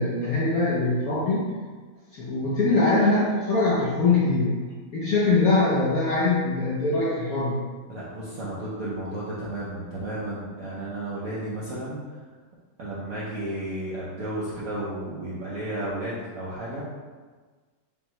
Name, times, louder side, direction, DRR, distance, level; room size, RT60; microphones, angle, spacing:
voice 1, 0.0-1.4 2.1-4.6 4.9-7.6, left 3 dB, 65° left, -7 dB, 0.9 m, -22 dB
voice 2, 7.9-12.0 12.8-16.8, right 1 dB, 70° right, -8 dB, 0.8 m, -33 dB
5.4 x 2.1 x 2.9 m, 1.4 s
omnidirectional pair, 2.2 m